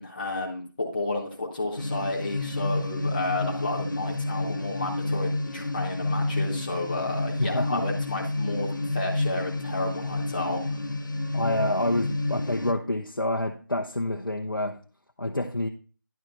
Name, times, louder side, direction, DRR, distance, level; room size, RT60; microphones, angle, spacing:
voice 1, 0.0-10.8, left 2 dB, 25° left, 1.1 m, -32 dB
sound 1, 1.8-12.7, left 2 dB, 70° left, 1.0 m, -30 dB
voice 2, 7.4-7.9 11.3-14.8 15.2-15.7, left 1 dB, 90° left, 1.0 m, -28 dB
10.5 x 4.9 x 5.7 m
figure-of-eight pair, 165°, 11 cm